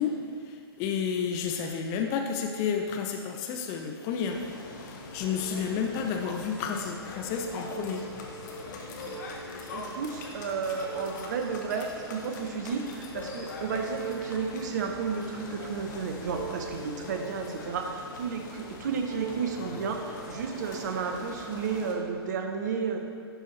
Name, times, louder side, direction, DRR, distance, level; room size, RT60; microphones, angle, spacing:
voice 1, 0.0-4.4 4.8-8.0, left 6 dB, 25° left, 3 dB, 0.4 m, -31 dB
sound 1, 4.3-21.9, left 3 dB, 45° left, 0.9 m, -42 dB
sound 2, 5.1-22.3, right 3 dB, 70° right, 1.8 m, -46 dB
voice 2, 9.7-23.0, right 5 dB, 45° right, 4 dB, 0.7 m, -32 dB
11.0 x 4.3 x 3.0 m, 2.2 s
figure-of-eight pair, 115°, 14 cm